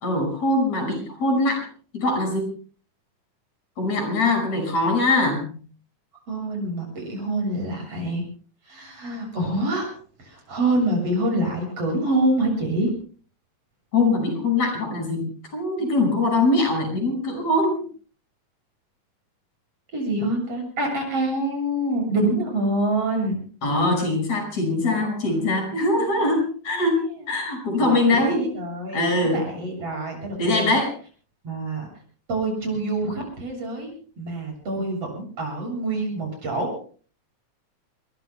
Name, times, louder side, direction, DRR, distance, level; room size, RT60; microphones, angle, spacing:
voice 1, 0.0-1.7 1.9-2.5 3.8-5.6 13.9-17.8 23.6-27.0 27.3-28.6 28.9-29.4 30.4-30.9, left 2 dB, 60° left, 4 dB, 6.9 m, -22 dB
voice 2, 6.3-8.2 8.7-9.9 10.2-12.9 19.9-23.5 24.8-25.5 26.0-27.3 27.8-30.7 31.4-31.9 32.3-33.9 34.2-36.8, right 1 dB, 50° right, 1 dB, 8.8 m, -26 dB
28.5 x 21.5 x 2.2 m, 0.41 s
omnidirectional pair, 3.4 m